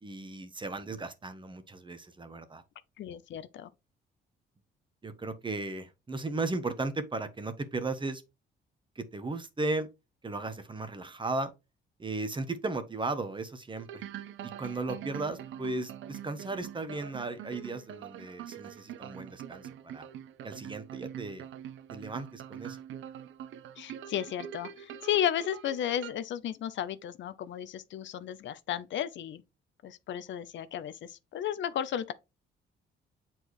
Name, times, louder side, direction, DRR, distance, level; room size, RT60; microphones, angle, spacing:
voice 1, 0.0-2.6 5.0-8.2 8.9-9.9 10.2-11.5 12.0-14.0 14.4-20.1 20.4-21.5 21.9-22.8, right 3 dB, 25° right, 1.2 m, -36 dB
voice 2, 3.0-3.7 23.8-29.4 29.8-32.1, left 10 dB, 70° left, 0.7 m, -34 dB
sound 1, 13.8-26.1, right 10 dB, 75° right, 0.6 m, -44 dB
7.9 x 4.5 x 3.1 m
cardioid pair, 90°, 20 cm